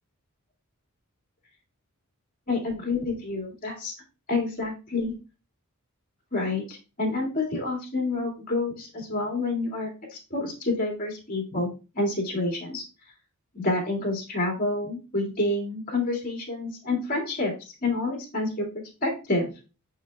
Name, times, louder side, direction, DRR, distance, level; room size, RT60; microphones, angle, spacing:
voice 1, 2.5-3.9 4.3-5.1 6.3-11.7 11.9-12.8 13.5-19.5, left 2 dB, 40° left, 0 dB, 2.4 m, -28 dB
6.9 x 6.4 x 2.4 m, 0.32 s
head